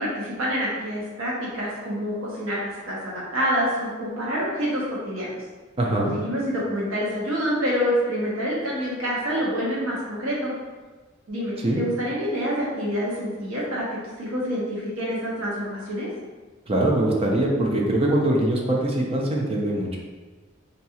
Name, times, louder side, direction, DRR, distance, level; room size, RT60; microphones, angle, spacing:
voice 1, 0.0-5.4 6.0-10.5 11.3-16.1, equal, 75° right, -5 dB, 0.8 m, -27 dB
voice 2, 5.8-6.1 11.6-11.8 16.7-20.0, right 1 dB, 30° right, -2 dB, 0.5 m, -22 dB
3.9 x 2.8 x 2.3 m, 1.3 s
head